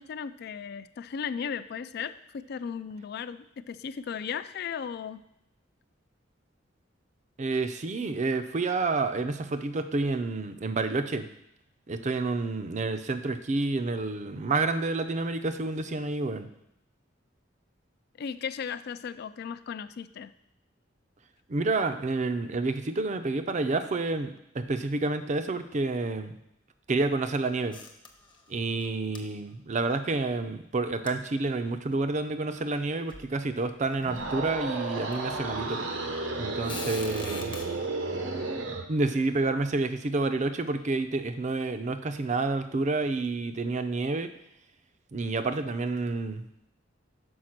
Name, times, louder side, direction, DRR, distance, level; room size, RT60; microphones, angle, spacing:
voice 1, 0.0-5.2 18.2-20.3, left 7 dB, 55° left, 14 dB, 0.3 m, -36 dB
voice 2, 7.4-11.3 11.9-16.5 21.5-26.3 26.9-27.8 28.5-35.8 36.4-37.5 38.9-44.3 45.1-46.4, right 3 dB, 40° right, 9 dB, 0.5 m, -29 dB
sound 1, 27.7-28.5 28.8-28.9 29.1-29.2 31.1-31.2 31.9-32.0 32.8-32.9 33.1-33.3 33.9-34.3 35.1-35.2 36.6-37.6, left 4 dB, 25° left, 0.8 m, -41 dB
sound 2, 34.0-38.9, right 3 dB, 80° right, 0.9 m, -33 dB
6.3 x 4.9 x 5.9 m, 0.80 s
head